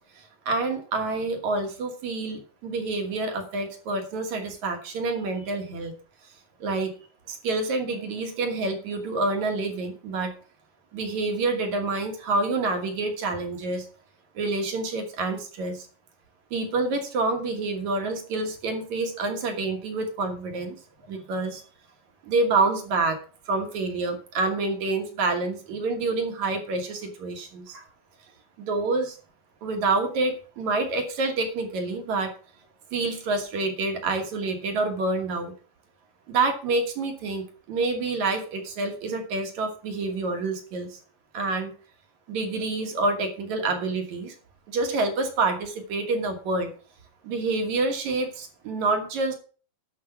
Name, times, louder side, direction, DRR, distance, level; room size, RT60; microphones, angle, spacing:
voice 1, 0.2-5.9 6.6-6.9 7.3-10.3 10.9-13.9 14.4-15.9 16.5-20.8 21.1-21.6 22.2-23.2 23.5-27.8 28.6-29.2 29.6-32.3 32.9-35.5 36.3-41.0 41.3-41.7 42.3-44.3 44.7-46.7 47.2-49.4, right 3 dB, 60° right, 4 dB, 2.5 m, -27 dB
11.5 x 5.4 x 5.8 m, 0.40 s
omnidirectional pair, 4.1 m